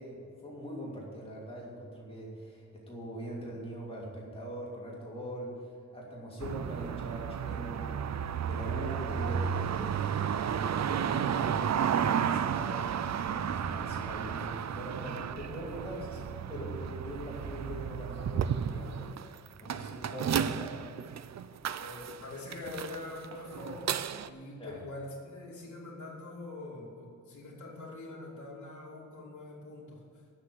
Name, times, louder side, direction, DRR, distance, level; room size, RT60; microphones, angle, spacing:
voice 1, 0.0-8.2 8.5-12.8 13.2-19.1 19.6-20.8 24.6-24.7, equal, 20° left, -5 dB, 2.9 m, -42 dB
sound 1, 6.4-24.3, right 8 dB, 65° right, 0.5 m, -33 dB
voice 2, 21.8-30.2, left 2 dB, 70° left, -9 dB, 2.8 m, -44 dB
9.7 x 7.3 x 9.1 m, 2.3 s
wide cardioid pair, 175°, 30 cm